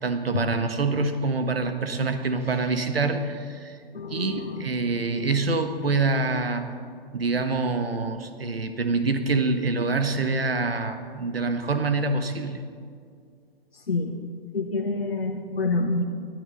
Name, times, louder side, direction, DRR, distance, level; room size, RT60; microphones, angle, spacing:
voice 1, 0.0-3.8 4.1-6.7 7.1-12.6, right 3 dB, 75° right, 8 dB, 1.5 m, -26 dB
voice 2, 3.9-4.6 7.4-7.5 13.9-14.2 14.5-16.0, left 3 dB, 80° left, 1 dB, 1.3 m, -27 dB
19.5 x 12.5 x 4.1 m, 2.2 s
figure-of-eight pair, 120°, 30 cm